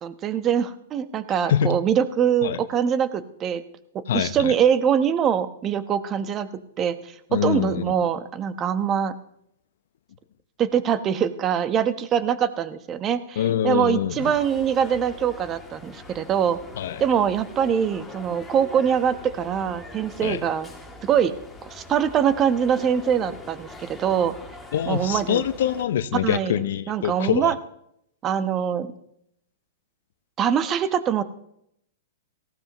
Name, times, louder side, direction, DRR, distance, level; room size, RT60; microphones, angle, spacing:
voice 1, 0.0-3.6 4.1-6.5 6.8-9.1 10.6-16.6 17.0-20.7 21.0-21.3 21.6-24.3 24.9-25.4 26.1-26.6 26.9-27.6 28.2-28.9 30.4-31.2, right 8 dB, 30° right, 12 dB, 1.0 m, -23 dB
voice 2, 4.1-4.5 7.3-8.0 13.4-14.3 16.8-17.0 20.2-20.4 24.7-27.5, left 10 dB, 65° left, 14 dB, 0.7 m, -24 dB
sound 1, 14.2-25.8, left 2 dB, 5° left, 2.5 m, -43 dB
18.5 x 15.5 x 3.1 m, 0.74 s
hypercardioid pair, 120°, 0 cm